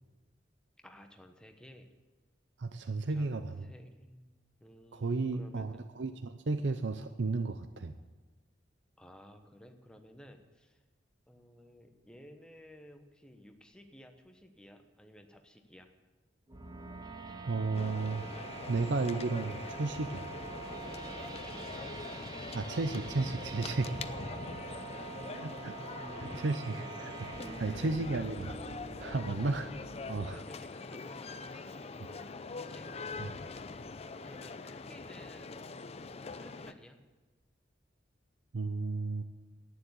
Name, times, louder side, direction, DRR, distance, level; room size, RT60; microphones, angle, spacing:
voice 1, 0.8-1.9 3.1-5.9 9.0-10.8 11.3-15.9 21.5-21.9 22.2-22.6 24.7-25.6 26.7-27.1 27.4-28.1 29.3-29.5 30.3-33.4 34.2-35.6 36.4-37.0, equal, 5° left, 5 dB, 1.1 m, -55 dB
voice 2, 2.6-3.6 4.9-7.9 17.5-18.3 18.7-20.3 22.5-23.9 25.4-25.7 26.2-26.7 27.6-28.5 29.0-29.7 30.1-30.4 33.2-33.3 38.5-39.2, right 3 dB, 70° right, 9 dB, 0.6 m, -33 dB
sound 1, 16.5-30.5, right 4 dB, 20° right, 0.8 m, -45 dB
sound 2, 17.7-36.7, left 4 dB, 35° left, 0.5 m, -43 dB
11.0 x 9.5 x 8.2 m, 1.2 s
head